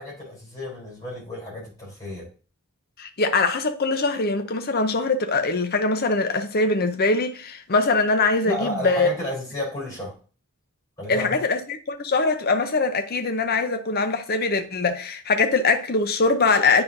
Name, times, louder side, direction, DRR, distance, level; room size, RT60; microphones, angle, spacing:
voice 1, 0.0-2.3 8.4-10.1 11.0-11.4, left 1 dB, 15° left, 3.6 m, -32 dB
voice 2, 3.0-9.1 11.1-16.8, left 3 dB, 45° left, 0.7 m, -22 dB
9.7 x 4.4 x 2.6 m
head